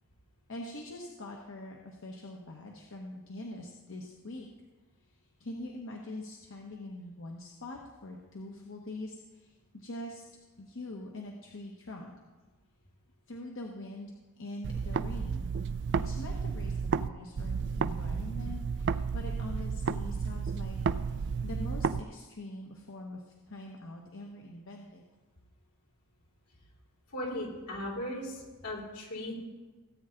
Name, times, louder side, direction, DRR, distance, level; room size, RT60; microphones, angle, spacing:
voice 1, 0.5-4.5 5.4-10.2 10.6-12.1 13.3-15.5 16.0-20.8 21.2-25.0, left 1 dB, 60° left, 0 dB, 1.2 m, -43 dB
sound 1, 14.6-17.1 17.4-22.0, right 5 dB, 55° right, 0.4 m, -32 dB
voice 2, 27.1-29.3, left 1 dB, 80° left, -3 dB, 4.0 m, -37 dB
17.5 x 8.7 x 3.9 m, 1.3 s
head